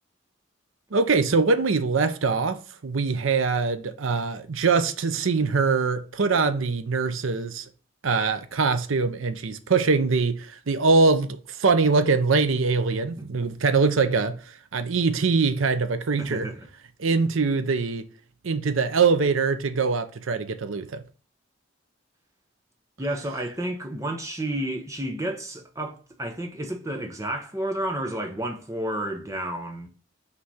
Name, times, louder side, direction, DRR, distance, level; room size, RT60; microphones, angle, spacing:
voice 1, 0.9-7.7 8.0-14.4 14.7-16.5 17.0-18.0 18.4-21.0, right 4 dB, 75° right, 0.6 m, -23 dB
voice 2, 16.2-16.7 23.0-29.9, right 1 dB, 15° right, 0.9 m, -31 dB
5.9 x 3.3 x 5.5 m
head